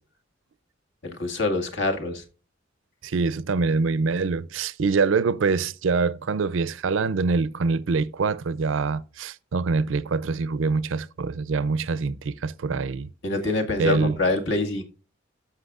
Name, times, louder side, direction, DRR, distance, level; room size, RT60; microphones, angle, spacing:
voice 1, 1.0-2.2 13.2-14.8, left 2 dB, 65° left, 1.8 m, -25 dB
voice 2, 3.0-13.1 13.8-14.2, right 4 dB, 70° right, 0.5 m, -25 dB
13.5 x 5.9 x 2.4 m
head